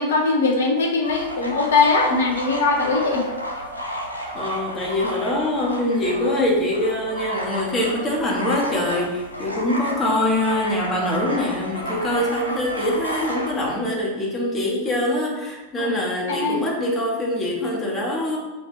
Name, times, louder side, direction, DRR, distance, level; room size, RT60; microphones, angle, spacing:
voice 1, 0.0-3.2 14.9-15.0 15.8-15.9 16.3-16.6, left 3 dB, 65° left, 2 dB, 1.1 m, -20 dB
sound 1, 1.0-13.8, equal, 85° left, 0.8 m, -32 dB
voice 2, 4.3-18.4, left 1 dB, 25° left, -2 dB, 1.6 m, -24 dB
6.0 x 3.3 x 5.0 m, 1.2 s
figure-of-eight pair, 90°, 0 cm